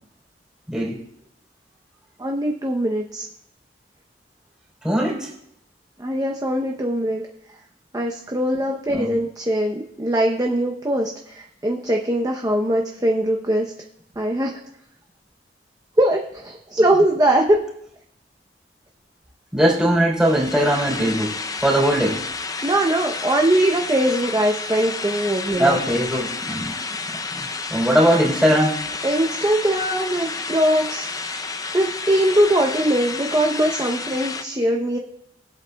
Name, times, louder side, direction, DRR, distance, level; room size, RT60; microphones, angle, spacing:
voice 1, 0.7-1.0 4.8-5.3 8.9-9.1 19.5-22.2 25.6-26.7 27.3-28.9, equal, 5° right, -4 dB, 3.5 m, -20 dB
voice 2, 2.2-3.3 6.0-7.2 7.9-13.7 14.2-14.5 16.0-17.6 22.6-25.8 29.0-31.5 31.7-35.0, right 1 dB, 20° right, 1 dB, 0.7 m, -21 dB
sound 1, 20.2-34.4, left 4 dB, 20° left, 0.5 m, -30 dB
20.5 x 8.0 x 2.3 m, 0.75 s
head